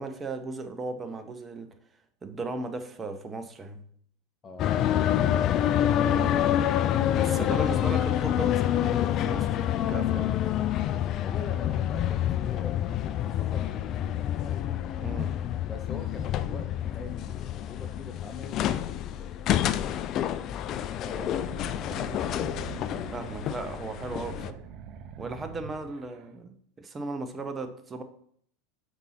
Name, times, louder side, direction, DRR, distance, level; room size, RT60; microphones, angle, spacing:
voice 1, 0.0-1.7 2.2-3.8 5.9-6.4 7.1-9.6 9.9-10.3 15.0-15.3 20.4-20.5 23.1-24.6 25.2-28.0, right 3 dB, 20° right, 8 dB, 0.8 m, -36 dB
voice 2, 4.4-6.5 11.2-14.9 15.7-20.2 20.5-21.9, left 4 dB, 25° left, 6 dB, 1.1 m, -44 dB
sound 1, 4.6-24.5, left 11 dB, 45° left, 0.3 m, -27 dB
sound 2, 21.1-26.3, right 8 dB, 45° right, 0.6 m, -44 dB
5.3 x 4.5 x 4.2 m, 0.63 s
hypercardioid pair, 85°, 0 cm